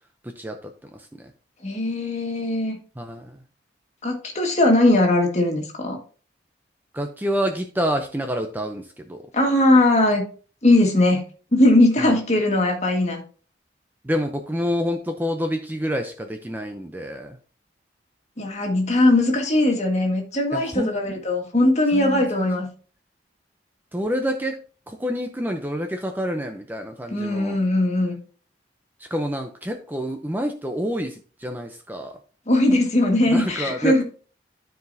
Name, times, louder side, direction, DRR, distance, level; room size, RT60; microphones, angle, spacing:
voice 1, 1.6-2.8 4.0-6.0 9.3-10.3 10.6-11.2 11.5-13.2 18.4-22.7 27.1-28.1 32.5-34.0, left 1 dB, 35° left, 2 dB, 1.7 m, -19 dB
voice 2, 3.0-3.4 6.9-9.2 12.0-12.1 14.0-17.4 20.5-20.9 21.9-22.2 23.9-24.6 24.9-27.6 29.0-32.2 33.3-34.0, equal, 10° right, 4 dB, 0.6 m, -27 dB
12.5 x 4.7 x 2.7 m, 0.39 s
head